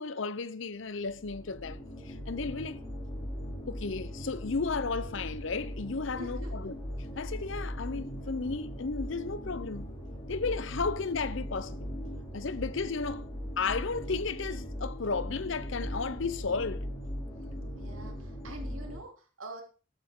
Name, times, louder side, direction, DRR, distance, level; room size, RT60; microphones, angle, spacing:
voice 1, 0.0-1.8 2.1-2.8 3.7-6.7 7.2-9.9 10.3-11.9 12.3-13.3 13.6-16.9, left 4 dB, 70° left, 0.7 m, -34 dB
sound 1, 1.0-19.0, equal, 20° left, 3.0 m, -39 dB
voice 2, 6.2-6.5 17.7-19.6, right 2 dB, 90° right, 3.1 m, -45 dB
13.5 x 8.9 x 3.8 m
head